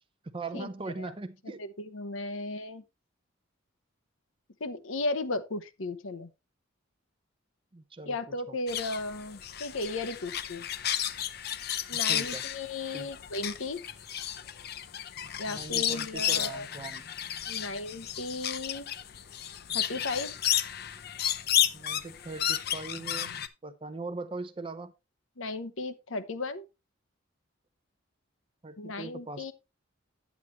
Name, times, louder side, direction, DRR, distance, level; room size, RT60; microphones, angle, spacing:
voice 1, 0.2-1.6 7.7-8.6 12.1-12.4 12.9-13.1 15.5-17.1 21.7-24.9 28.6-29.5, right 3 dB, 25° right, 0.6 m, -40 dB
voice 2, 1.6-2.8 4.6-6.3 8.0-10.7 11.9-13.8 15.4-16.7 17.5-18.9 19.7-20.3 25.4-26.6 28.8-29.5, left 2 dB, 75° left, 0.9 m, -35 dB
sound 1, 8.7-23.5, left 10 dB, 50° left, 0.6 m, -32 dB
9.7 x 8.3 x 3.1 m
head